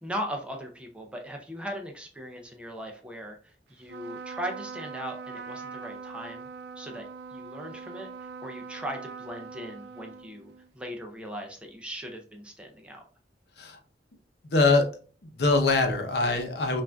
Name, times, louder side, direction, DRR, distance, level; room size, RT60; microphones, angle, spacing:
voice 1, 0.0-6.5 6.8-13.0, equal, 5° right, 2 dB, 0.5 m, -39 dB
Trumpet, 3.8-10.7, right 5 dB, 65° right, 0.3 m, -42 dB
voice 2, 14.4-14.9 15.2-16.8, left 3 dB, 65° left, 4 dB, 0.7 m, -23 dB
5.7 x 2.5 x 2.3 m, 0.40 s
head